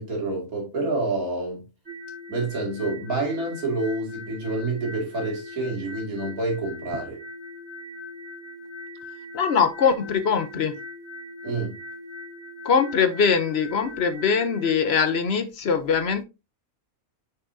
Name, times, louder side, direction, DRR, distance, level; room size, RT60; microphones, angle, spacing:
voice 1, 0.0-1.7 2.3-7.2 11.4-11.8, right 2 dB, 90° right, 2.8 m, -28 dB
sound 1, 1.9-14.7, left 1 dB, 45° right, 3.2 m, -40 dB
voice 2, 9.3-10.7 12.6-16.2, left 6 dB, 55° left, 0.9 m, -22 dB
6.6 x 5.8 x 2.7 m
omnidirectional pair, 1.5 m